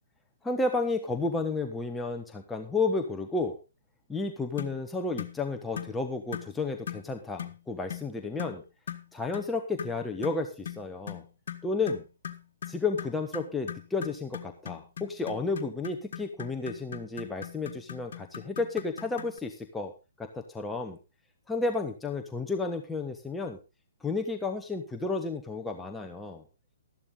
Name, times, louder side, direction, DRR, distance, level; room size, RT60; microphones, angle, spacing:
voice 1, 0.4-3.6 4.1-8.6 9.1-11.2 11.6-12.0 12.7-19.9 20.2-21.0 21.5-23.6 24.0-26.4, left 3 dB, 5° left, 3 dB, 1.2 m, -32 dB
sound 1, 4.6-4.8 5.2-5.4 5.8-6.0 6.3-6.5 6.9-7.1 7.4-7.6 7.9-8.1 8.4-8.6 8.9-9.1 9.3-9.5 9.8-19.4, left 9 dB, 65° left, 1.5 m, -40 dB
13.5 x 11.5 x 3.8 m, 0.29 s
hypercardioid pair, 140°, 0 cm